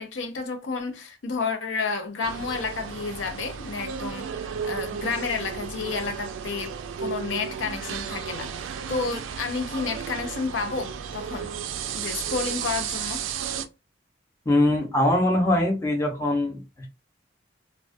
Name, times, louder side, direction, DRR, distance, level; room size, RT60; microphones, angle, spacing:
voice 1, 0.0-4.3 4.6-11.5 11.9-13.2, left 4 dB, 80° left, 0.5 m, -31 dB
sound 1, 2.2-13.7, right 7 dB, 85° right, 0.3 m, -34 dB
voice 2, 14.5-16.9, left 1 dB, 15° left, 0.6 m, -22 dB
2.3 x 2.2 x 2.5 m
head